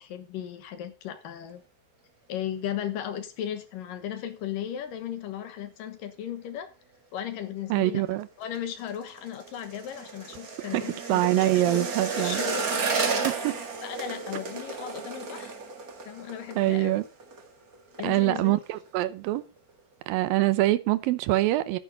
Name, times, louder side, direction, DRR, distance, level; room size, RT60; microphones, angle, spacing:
voice 1, 0.0-1.6 2.3-6.7 7.1-8.0 8.4-11.9 12.2-13.4 13.8-15.5 16.1-17.0 18.0-18.6, left 9 dB, 65° left, 2.6 m, -36 dB
voice 2, 7.7-8.3 10.7-12.4 13.2-13.5 16.6-17.0 18.0-19.4 20.1-21.8, right 16 dB, 75° right, 2.3 m, -24 dB
sound 1, 8.4-17.5 17.7-18.1 18.4-18.9 19.2-19.3, right 4 dB, 55° right, 1.0 m, -33 dB
12.0 x 9.9 x 3.9 m
omnidirectional pair, 4.7 m